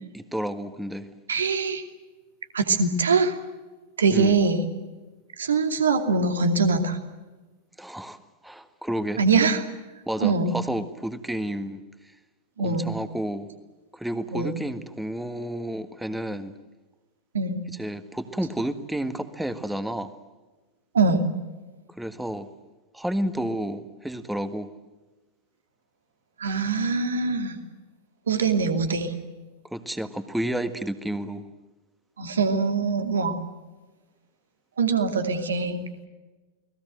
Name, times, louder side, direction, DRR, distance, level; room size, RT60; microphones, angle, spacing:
voice 1, 0.1-1.1 4.1-4.4 7.8-9.2 10.1-11.8 12.6-13.5 13.9-16.6 17.7-20.1 22.0-22.5 22.9-24.7 29.7-31.5, right 1 dB, 5° right, 11 dB, 1.7 m, -31 dB
voice 2, 1.3-1.8 2.5-3.4 4.0-4.7 5.4-7.0 9.2-9.6 10.2-10.5 12.6-12.9 14.3-14.5 17.3-17.6 20.9-21.2 26.4-27.6 28.3-29.1 32.2-33.4 34.8-36.1, right 4 dB, 70° right, 7 dB, 2.7 m, -23 dB
29.5 x 20.0 x 7.8 m, 1.2 s
figure-of-eight pair, 90°, 0 cm